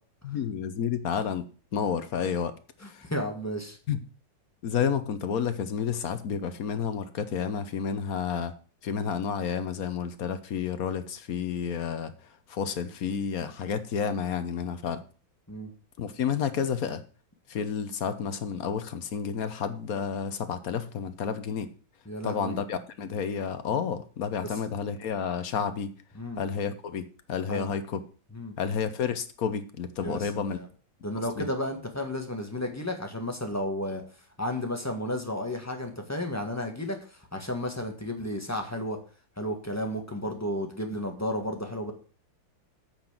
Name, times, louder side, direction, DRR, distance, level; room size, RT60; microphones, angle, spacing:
voice 1, 0.2-3.1 3.9-4.0 4.6-8.5 8.8-15.0 16.0-17.0 17.5-21.7 22.2-25.9 26.4-28.0 28.6-30.6 31.4-31.5, left 7 dB, 55° left, 1.2 m, -30 dB
voice 2, 3.0-3.8 15.5-15.7 22.0-22.6 26.1-26.4 27.5-27.7 28.3-28.5 30.0-30.2 30.5-30.7 31.0-34.0 34.4-39.0 39.4-41.9, left 1 dB, 10° left, 1.6 m, -32 dB
8.9 x 6.0 x 7.3 m
omnidirectional pair, 2.1 m